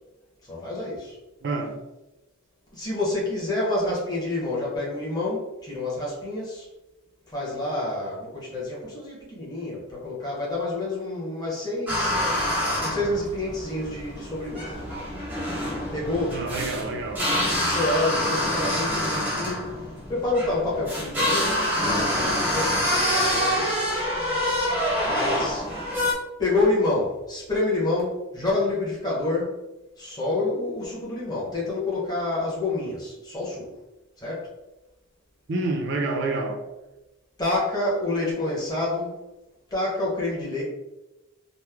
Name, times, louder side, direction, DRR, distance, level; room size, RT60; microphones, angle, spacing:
voice 1, 0.4-1.2 2.7-6.7 7.3-12.2 12.8-14.8 15.9-16.4 17.5-19.7 20.1-23.7 25.0-25.7 26.4-29.6 30.0-33.7 34.2-34.5 37.4-39.2 39.7-40.6, left 2 dB, 20° left, 0.9 m, -28 dB
voice 2, 1.4-1.8 16.3-17.3 35.5-36.6, right 3 dB, 50° right, 0.5 m, -28 dB
sound 1, 11.9-26.1, left 1 dB, 10° right, 0.7 m, -26 dB
3.0 x 2.0 x 3.4 m
head